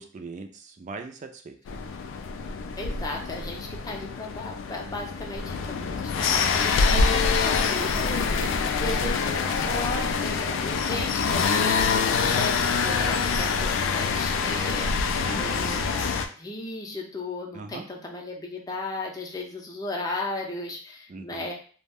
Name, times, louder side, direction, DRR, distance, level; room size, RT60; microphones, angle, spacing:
voice 1, 0.0-1.8 15.2-15.5 17.5-17.8 21.1-21.5, right 3 dB, 40° right, 6 dB, 0.3 m, -40 dB
sound 1, 1.7-16.3, left 5 dB, 75° left, 0.3 m, -25 dB
voice 2, 2.8-16.0 16.4-21.5, left 2 dB, 20° left, 0 dB, 0.5 m, -35 dB
2.4 x 2.1 x 3.3 m, 0.43 s
head